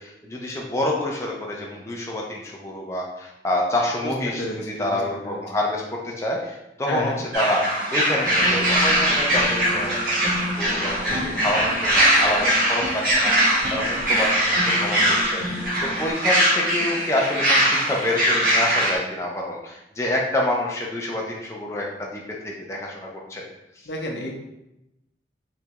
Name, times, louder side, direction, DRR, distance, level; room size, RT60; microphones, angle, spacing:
voice 1, 0.0-10.3 10.6-23.4, left 1 dB, 15° left, -2 dB, 0.4 m, -27 dB
voice 2, 4.2-4.8 5.2-5.4 6.9-7.2 23.9-24.3, left 1 dB, 75° left, 1 dB, 0.6 m, -30 dB
sound 1, 7.3-18.9, right 1 dB, 50° right, 1.0 m, -21 dB
sound 2, 8.2-16.1, equal, 75° right, 1.1 m, -33 dB
3.4 x 3.1 x 2.9 m, 0.90 s
head